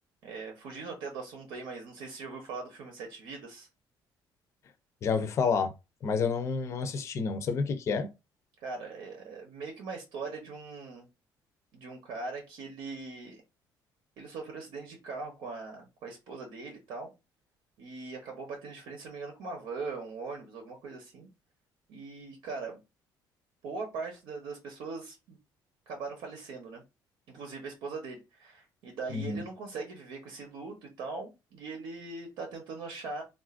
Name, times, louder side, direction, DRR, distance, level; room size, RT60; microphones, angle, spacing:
voice 1, 0.2-3.7 8.6-11.1 11.7-13.4 14.2-17.1 17.8-21.3 21.9-22.8 23.6-25.4 25.9-26.8 27.3-33.2, right 4 dB, 80° right, 0.9 m, -40 dB
voice 2, 5.0-5.7 6.0-8.1 29.1-29.4, left 5 dB, 35° left, 0.5 m, -29 dB
3.8 x 2.4 x 2.4 m
cardioid pair, 180°, 8 cm